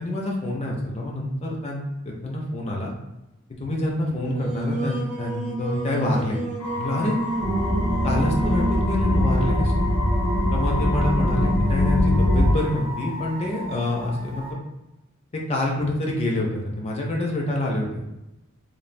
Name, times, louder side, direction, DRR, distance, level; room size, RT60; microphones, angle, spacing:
voice 1, 0.0-2.9 3.6-6.4 6.7-7.1 8.0-9.8 10.5-14.6 15.3-18.0, left 1 dB, 30° left, -1 dB, 0.4 m, -27 dB
Singing, 4.1-9.0, right 2 dB, 35° right, 0.4 m, -31 dB
sound 1, 6.6-14.5, left 2 dB, 75° left, 0.8 m, -33 dB
sound 2, 7.4-12.5, left 1 dB, 80° right, 0.6 m, -21 dB
3.2 x 2.2 x 2.5 m, 0.95 s
head